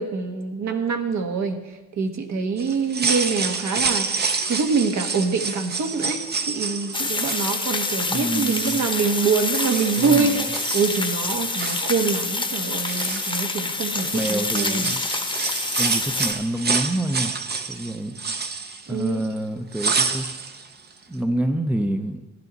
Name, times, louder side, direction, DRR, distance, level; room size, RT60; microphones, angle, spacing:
voice 1, 0.0-1.6 2.0-4.0 4.5-6.2 6.5-14.9 18.9-19.2, right 5 dB, 65° right, 4 dB, 1.5 m, -25 dB
sound 1, 2.6-8.0 8.3-9.2 9.5-11.2 11.5-12.5 12.8-13.6 13.9-19.4 19.7-20.7 20.9-21.0, right 4 dB, 35° right, 0.9 m, -28 dB
sound 2, 6.9-16.3, left 3 dB, 15° left, 1.0 m, -27 dB
voice 2, 8.1-8.9 10.0-10.4 14.1-15.0 15.8-17.4 17.7-18.2 18.9-20.3 21.1-22.3, right 1 dB, 5° right, 7 dB, 0.7 m, -27 dB
13.5 x 10.5 x 4.0 m, 1.1 s
cardioid pair, 90°, 30 cm